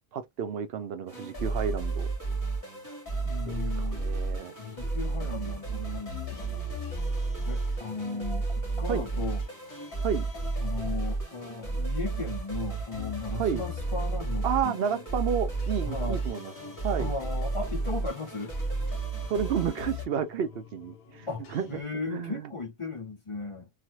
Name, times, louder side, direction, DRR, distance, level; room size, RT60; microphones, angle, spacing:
voice 1, 0.1-2.1 3.5-4.5 8.9-9.0 10.0-10.3 13.4-13.6 14.4-16.5 16.8-17.1 19.3-21.8 22.1-22.5, right 7 dB, 70° right, 0.8 m, -31 dB
sound 1, 1.1-20.1, right 3 dB, 20° left, 1.5 m, -32 dB
voice 2, 3.2-4.0 4.6-6.6 7.5-9.4 10.6-14.8 15.8-16.2 17.0-18.5 21.3-23.7, left 4 dB, 35° left, 0.6 m, -37 dB
sound 2, 3.7-21.8, left 8 dB, 65° left, 0.9 m, -52 dB
3.2 x 2.1 x 3.0 m
omnidirectional pair, 1.1 m